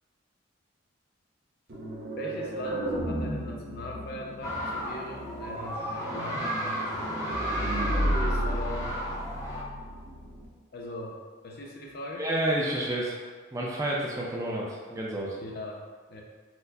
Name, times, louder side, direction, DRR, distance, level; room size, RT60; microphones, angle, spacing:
sound 1, 1.7-10.5, right 1 dB, 50° right, 0.7 m, -33 dB
voice 1, 2.2-6.5 8.2-9.1 10.7-12.3 15.4-16.2, left 1 dB, 50° left, -1 dB, 0.4 m, -40 dB
sound 2, 4.4-9.6, equal, 15° left, 0.7 m, -33 dB
voice 2, 12.2-13.2 13.5-15.4, right 1 dB, 15° right, -4 dB, 0.4 m, -30 dB
4.3 x 2.1 x 2.6 m, 1.5 s
head